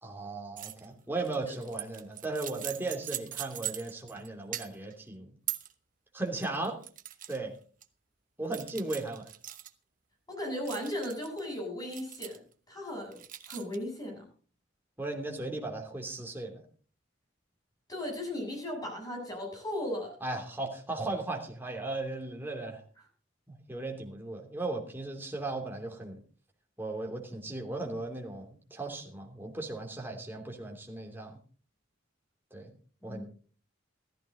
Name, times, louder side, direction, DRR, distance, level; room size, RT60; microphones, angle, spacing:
voice 1, 0.0-5.3 6.1-6.8 7.3-7.5 8.4-9.3 15.0-16.6 20.2-22.8 23.5-26.2 26.8-31.4 32.5-32.7 33.0-33.2, right 2 dB, 10° right, 1 dB, 3.0 m, -36 dB
sound 1, 0.6-0.9 1.2-4.3 4.5-4.9 5.5-5.7 6.3-7.4 7.8-7.9 8.5-9.7 10.7-11.4 11.9-12.5 13.1-13.8, right 11 dB, 45° right, 1.1 m, -40 dB
voice 2, 10.3-12.4 12.7-13.2 13.5-14.3 17.9-20.2 33.0-33.3, left 1 dB, 20° left, 0 dB, 7.9 m, -36 dB
15.0 x 14.5 x 3.9 m, 0.40 s
head